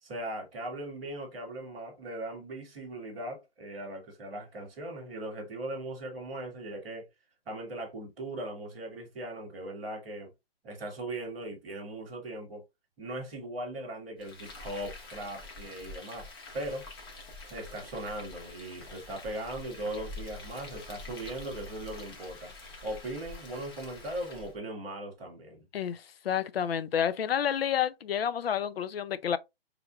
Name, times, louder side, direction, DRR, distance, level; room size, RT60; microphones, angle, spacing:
voice 1, 0.0-7.1 7.4-10.3 10.6-12.6 13.0-16.9 17.5-22.5 22.8-25.6, right 1 dB, ahead, 0.4 m, -39 dB
Frying (food), 14.2-24.6, left 2 dB, 25° left, 1.0 m, -46 dB
voice 2, 25.7-29.4, left 9 dB, 75° left, 0.6 m, -29 dB
4.9 x 3.4 x 2.2 m
hypercardioid pair, 165°, 30 cm